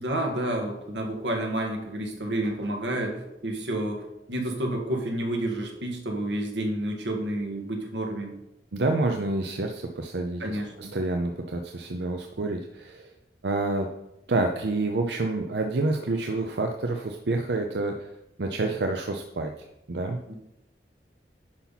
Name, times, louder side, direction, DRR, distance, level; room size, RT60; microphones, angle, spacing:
voice 1, 0.0-4.0 4.3-8.3 10.4-10.9 20.3-20.4, right 1 dB, 90° right, 2 dB, 1.8 m, -30 dB
voice 2, 8.7-13.1 13.4-13.9 14.3-18.1 18.4-20.2, right 2 dB, 70° right, 4 dB, 0.6 m, -28 dB
9.8 x 5.8 x 4.1 m, 0.89 s
head